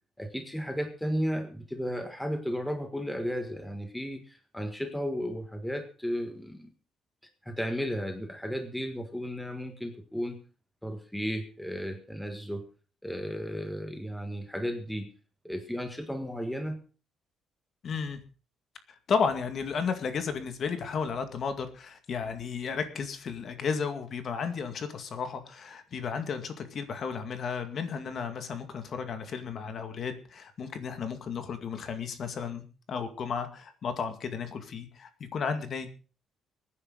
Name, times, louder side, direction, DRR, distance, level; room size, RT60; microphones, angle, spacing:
voice 1, 0.2-6.7 7.4-10.4 10.8-12.7 13.0-15.1 15.4-16.8, equal, ahead, 6 dB, 1.6 m, -34 dB
voice 2, 17.8-18.2 19.1-35.9, left 6 dB, 40° left, 8 dB, 2.1 m, -33 dB
23.0 x 9.9 x 4.0 m, 0.37 s
cardioid pair, 180°, 0 cm